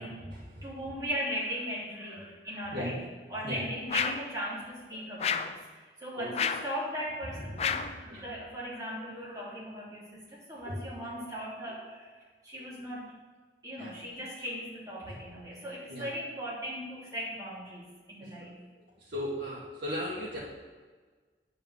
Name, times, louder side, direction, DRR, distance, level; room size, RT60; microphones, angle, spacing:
voice 1, 0.0-0.7 2.1-2.2 2.7-3.0 3.4-3.7 6.2-6.3 7.3-7.8 8.1-8.2 10.6-11.1 13.8-13.9 15.0-15.2 15.9-16.1 18.4-18.5 19.1-20.4, equal, 85° right, -8 dB, 2.1 m, -37 dB
voice 2, 0.6-3.0 3.3-13.1 13.6-18.6, equal, 20° right, -7 dB, 3.3 m, -38 dB
sound 1, 3.9-4.3 5.2-5.6 6.3-6.7 7.6-8.0, left 7 dB, 35° left, 0.4 m, -30 dB
9.3 x 5.5 x 7.2 m, 1.4 s
head